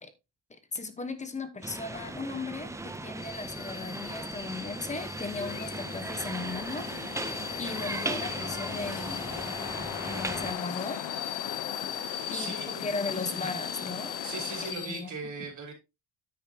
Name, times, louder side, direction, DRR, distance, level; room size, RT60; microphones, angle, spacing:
voice 1, 0.5-6.9 7.2-9.3 10.0-11.0 12.3-14.2 14.6-15.3, left 3 dB, 15° left, 1.0 m, -37 dB
sound 1, 1.6-10.5, right 2 dB, 5° right, 0.5 m, -37 dB
sound 2, 3.2-15.0, left 7 dB, 35° left, 1.2 m, -40 dB
sound 3, 5.4-14.7, left 12 dB, 85° left, 0.9 m, -39 dB
voice 2, 12.3-12.9 14.2-15.7, right 4 dB, 45° right, 3.4 m, -39 dB
9.8 x 8.3 x 2.8 m
cardioid pair, 170°, 42 cm